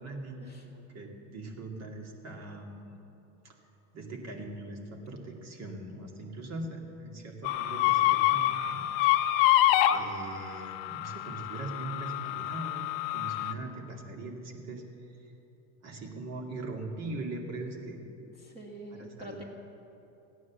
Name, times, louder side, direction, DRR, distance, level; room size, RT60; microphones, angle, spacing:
voice 1, 0.0-3.0 3.4-3.6 3.9-8.9 9.9-15.3 15.8-18.0 18.9-19.4, right 2 dB, 45° right, 1 dB, 2.4 m, -41 dB
sound 1, 7.4-13.5, left 14 dB, 65° left, 0.9 m, -27 dB
voice 2, 18.4-19.4, right 1 dB, 20° right, -2 dB, 1.7 m, -45 dB
15.0 x 9.6 x 7.3 m, 3.0 s
supercardioid pair, 105°, 37 cm